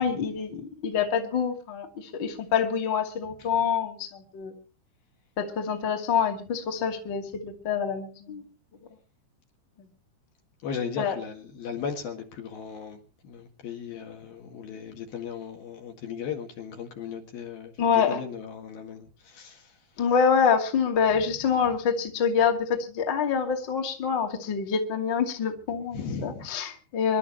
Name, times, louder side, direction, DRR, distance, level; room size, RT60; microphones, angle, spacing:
voice 1, 0.0-4.5 5.4-8.4 11.0-11.2 17.8-18.2 20.0-27.2, left 6 dB, 30° left, 2.3 m, -26 dB
voice 2, 10.6-19.8 21.3-21.4 25.9-26.5, left 6 dB, 60° left, 3.4 m, -37 dB
26.5 x 12.5 x 3.1 m
omnidirectional pair, 5.5 m